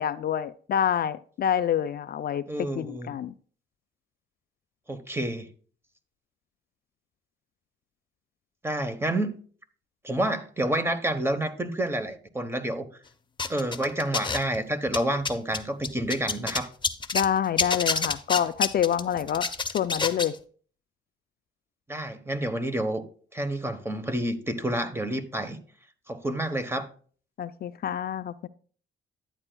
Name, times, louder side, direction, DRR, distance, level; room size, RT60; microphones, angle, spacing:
voice 1, 0.0-3.3 17.1-19.5 19.7-20.3 27.4-28.5, left 9 dB, 50° left, 0.4 m, -27 dB
voice 2, 2.5-3.1 4.9-5.5 8.6-9.4 10.0-12.9 13.5-16.7 21.9-23.0 23.3-25.6 26.1-26.9, right 1 dB, 10° right, 1.0 m, -29 dB
sound 1, 13.4-14.6 14.9-17.3 17.6-20.4, left 4 dB, 25° left, 0.7 m, -28 dB
11.0 x 8.9 x 2.3 m
cardioid pair, 90°, 20 cm